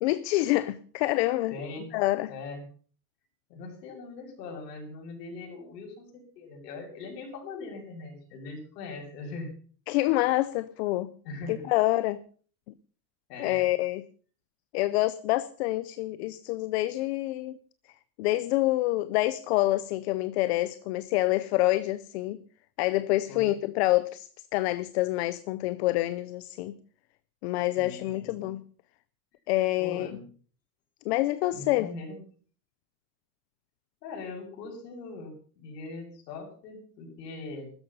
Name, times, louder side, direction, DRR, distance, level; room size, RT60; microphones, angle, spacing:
voice 1, 0.0-1.6 1.9-2.3 9.9-11.1 11.5-12.2 13.4-14.0 14.7-17.6 18.2-22.4 22.8-26.8 27.4-28.6 29.5-30.1 31.0-31.9, left 17 dB, 40° left, 0.7 m, -27 dB
voice 2, 1.5-1.9 2.3-2.6 3.5-9.6 11.2-11.7 13.3-13.7 23.3-23.5 27.8-28.4 29.8-30.2 31.5-32.2 34.0-37.7, left 3 dB, 70° left, 7.3 m, -41 dB
15.5 x 13.0 x 5.5 m
supercardioid pair, 170°, 50 cm